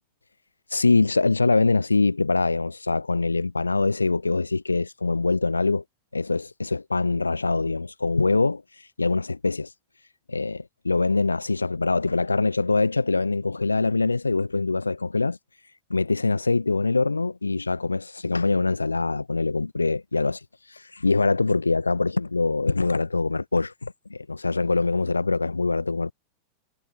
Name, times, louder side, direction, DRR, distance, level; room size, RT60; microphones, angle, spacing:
voice 1, 0.7-5.8 6.1-8.6 9.0-9.7 10.3-15.4 15.9-20.4 20.7-26.1, left 3 dB, 80° left, 0.8 m, -23 dB
figure-of-eight pair, 90°, 0 cm